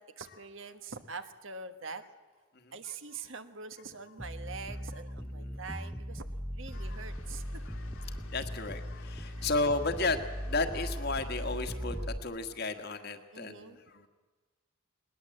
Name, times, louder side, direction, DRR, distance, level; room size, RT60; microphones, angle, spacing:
voice 1, 0.0-2.0 2.7-6.3 6.6-7.6 9.2-9.5 13.3-13.8, right 4 dB, 60° right, 9 dB, 1.3 m, -44 dB
voice 2, 2.5-2.9 5.4-5.9 6.7-7.1 7.6-14.1, left 3 dB, 45° left, 7 dB, 1.5 m, -34 dB
sound 1, 4.2-12.2, equal, ahead, 0.7 m, -39 dB
Water, 6.7-11.8, left 3 dB, 80° left, 2.3 m, -55 dB
20.5 x 20.0 x 7.8 m, 1.4 s
head